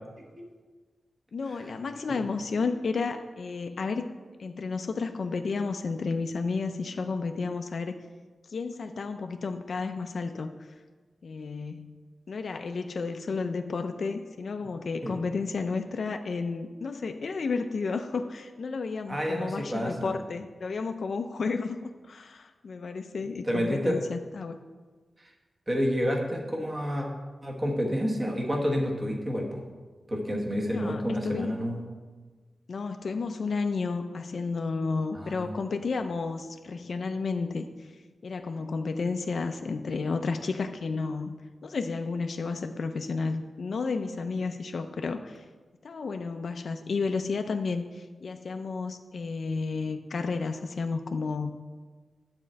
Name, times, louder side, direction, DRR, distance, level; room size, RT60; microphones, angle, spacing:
voice 1, 1.3-4.0 4.4-7.9 8.5-10.5 11.2-11.9 12.3-24.6 30.7-31.6 32.7-37.7 38.2-41.3 41.6-45.4 45.8-51.5, left 4 dB, 55° left, 6 dB, 0.5 m, -32 dB
voice 2, 19.1-20.1 23.5-24.0 25.7-27.1 27.4-29.6 30.1-31.8 35.1-35.5, equal, 20° right, 0 dB, 1.2 m, -29 dB
9.3 x 4.4 x 7.5 m, 1.4 s
wide cardioid pair, 180°, 0 cm